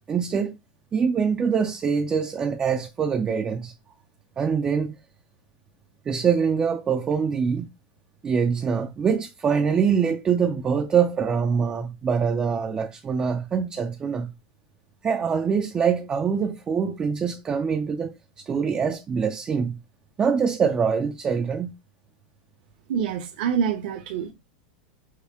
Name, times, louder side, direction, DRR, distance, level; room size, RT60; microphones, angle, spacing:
voice 1, 0.1-0.6 0.9-3.7 4.4-5.0 6.1-7.7 8.2-14.3 15.0-19.8 20.2-21.7, right 6 dB, 20° right, 0.5 m, -24 dB
voice 2, 22.9-24.3, right 7 dB, 60° right, 1.0 m, -26 dB
6.3 x 2.2 x 3.5 m
supercardioid pair, 140°, 5 cm